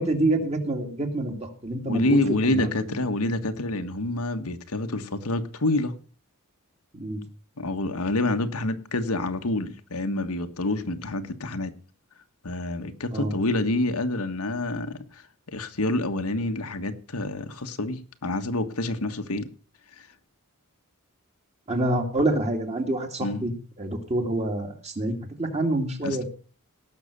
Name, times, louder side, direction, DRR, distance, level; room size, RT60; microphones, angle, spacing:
voice 1, 0.0-2.2 2.5-2.9 6.9-7.2 13.1-13.3 21.7-23.5 23.8-26.2, right 1 dB, 30° right, 2.6 m, -27 dB
voice 2, 1.9-5.9 7.6-11.7 12.4-15.0 15.5-19.5 23.2-23.5 26.0-26.2, left 2 dB, 85° left, 1.5 m, -27 dB
18.0 x 6.6 x 6.7 m
head